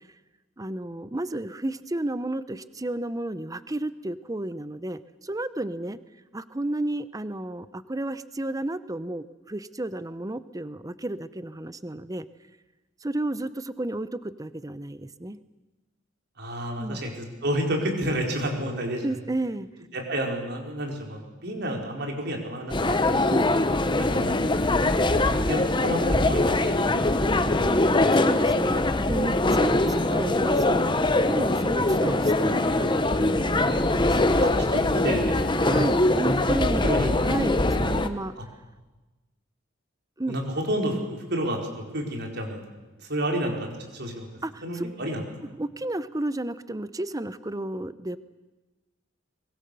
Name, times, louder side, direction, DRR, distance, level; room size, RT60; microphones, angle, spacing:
voice 1, 0.6-6.0 6.3-12.3 13.0-15.4 16.8-17.0 19.0-19.7 23.3-23.6 27.6-31.0 31.3-34.5 35.6-38.3 40.2-40.4 44.4-44.8 45.4-48.2, right 1 dB, 15° right, 14 dB, 0.7 m, -32 dB
voice 2, 16.4-19.1 19.9-23.5 24.0-24.3 24.7-27.3 34.4-35.6 36.8-37.1 40.3-42.6 43.0-44.3 44.6-45.2, right 1 dB, 55° right, 1 dB, 4.7 m, -30 dB
sound 1, 22.7-38.1, left 2 dB, 25° left, 1.0 m, -22 dB
24.0 x 21.5 x 6.9 m, 1.2 s
head